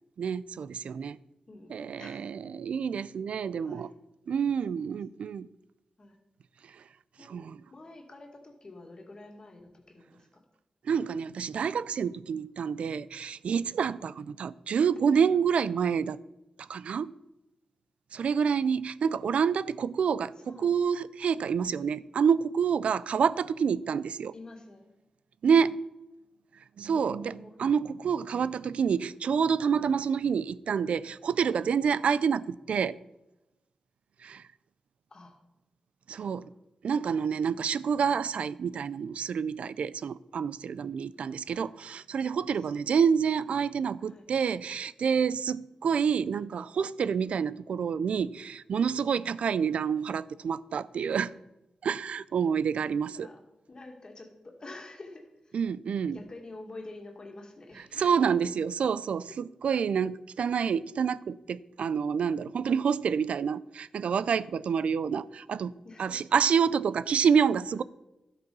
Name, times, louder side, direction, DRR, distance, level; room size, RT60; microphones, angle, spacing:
voice 1, 0.2-1.2 1.7-3.9 4.3-5.5 7.3-7.6 10.8-16.2 16.6-17.1 18.1-24.3 25.4-25.8 26.8-32.9 34.2-34.4 36.1-36.5 36.8-51.3 51.8-53.3 55.5-56.2 58.0-65.7 66.0-67.8, right 6 dB, 80° right, 0.4 m, -28 dB
voice 2, 2.0-2.3 3.6-3.9 4.7-5.0 6.0-6.2 7.2-7.3 7.7-10.4 15.5-15.8 19.0-19.4 20.4-20.7 24.3-24.9 26.9-27.6 35.1-35.4 36.1-36.5 41.5-41.7 42.6-42.7 44.1-44.3 46.7-46.9 53.1-55.6 56.1-58.4 65.8-66.2 67.5-67.6, left 2 dB, 40° left, 1.9 m, -48 dB
12.0 x 6.7 x 5.4 m
wide cardioid pair, 90°, 2 cm